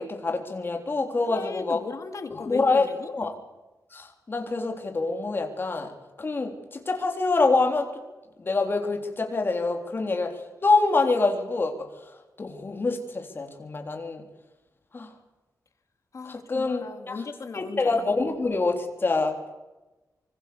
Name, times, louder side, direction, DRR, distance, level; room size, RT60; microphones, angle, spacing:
voice 1, 0.0-1.8 2.3-2.9 3.1-3.3 3.9-5.9 6.2-7.9 8.4-10.3 10.6-11.9 12.4-14.2 14.9-15.1 16.3-17.2 17.5-19.4, left 3 dB, 35° left, 4 dB, 3.8 m, -26 dB
voice 2, 1.3-3.1 16.1-18.0, left 4 dB, 50° left, 7 dB, 2.4 m, -37 dB
25.0 x 24.5 x 7.1 m, 1.1 s
wide cardioid pair, 170°, 7 cm